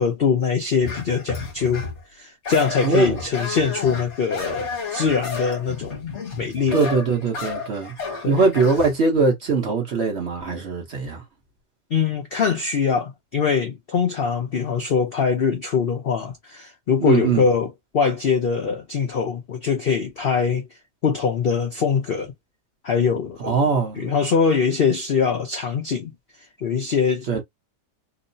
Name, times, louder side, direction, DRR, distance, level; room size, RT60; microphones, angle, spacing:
voice 1, 0.0-1.8 2.1-6.9 8.2-8.4 11.9-17.7 17.9-20.7 21.0-22.3 22.8-23.6 24.0-26.1 26.6-27.3, left 6 dB, 70° left, 0.5 m, -22 dB
sound 1, 0.8-2.0 2.5-8.9, left 4 dB, 45° left, 1.3 m, -31 dB
voice 2, 2.8-3.2 6.7-7.9 8.2-11.2 17.0-17.4 23.4-24.1 27.3-27.4, right 4 dB, 50° right, 0.9 m, -21 dB
3.0 x 2.0 x 2.5 m
omnidirectional pair, 1.8 m